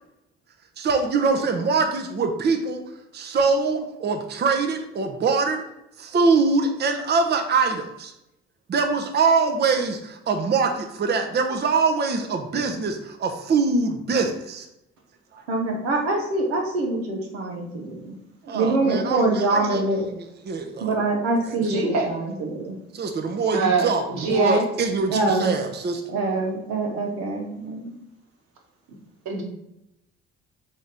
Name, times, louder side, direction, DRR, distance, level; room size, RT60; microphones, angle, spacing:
voice 1, 0.8-2.8 3.1-5.6 6.0-8.1 8.7-14.7 15.3-15.4 18.5-20.1 20.5-20.9 22.9-26.0, right 4 dB, 35° right, 5 dB, 0.7 m, -23 dB
voice 2, 15.5-18.1 18.5-20.1 20.8-22.8 25.1-25.5 26.1-27.9, right 2 dB, 90° right, 0 dB, 0.8 m, -24 dB
voice 3, 21.7-22.1 23.5-23.9 24.2-24.6 29.2-29.4, right 4 dB, 65° right, 0 dB, 1.3 m, -22 dB
3.6 x 3.4 x 4.1 m, 0.86 s
hypercardioid pair, 55°, 31 cm